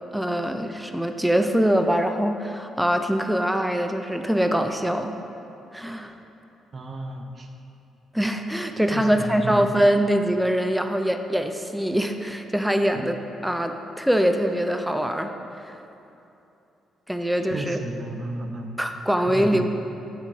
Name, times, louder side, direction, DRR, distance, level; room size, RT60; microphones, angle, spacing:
voice 1, 0.1-5.1 5.7-6.1 8.1-15.3 15.6-15.8 17.1-17.8 18.8-19.7, equal, 5° right, 6 dB, 0.5 m, -23 dB
voice 2, 6.7-7.5 8.9-9.7 12.9-13.0 17.4-18.7 19.2-19.7, right 2 dB, 45° right, 4 dB, 0.8 m, -33 dB
10.0 x 3.8 x 5.4 m, 2.8 s
cardioid pair, 90°, 0 cm